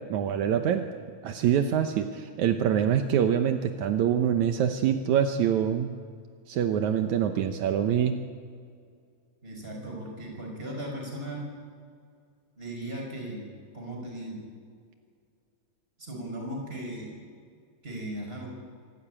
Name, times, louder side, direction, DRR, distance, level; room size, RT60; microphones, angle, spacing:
voice 1, 0.1-0.8 1.2-5.9 6.5-8.2, right 9 dB, 80° right, 6 dB, 1.7 m, -25 dB
voice 2, 9.4-11.5 12.6-13.5 13.7-14.5 16.0-17.2 17.8-18.5, right 1 dB, 15° right, 0 dB, 5.7 m, -37 dB
26.0 x 13.0 x 8.9 m, 2.2 s
omnidirectional pair, 4.6 m